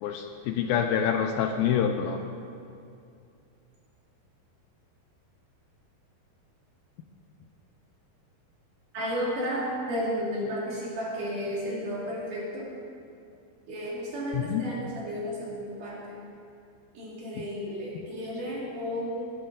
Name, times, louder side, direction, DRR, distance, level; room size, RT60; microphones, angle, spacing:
voice 1, 0.0-2.2 14.3-14.7, left 8 dB, 80° left, 5 dB, 2.3 m, -26 dB
voice 2, 8.9-12.7 13.7-16.2 16.9-19.3, equal, 55° right, -5 dB, 3.8 m, -33 dB
19.0 x 9.8 x 3.9 m, 2.4 s
omnidirectional pair, 4.6 m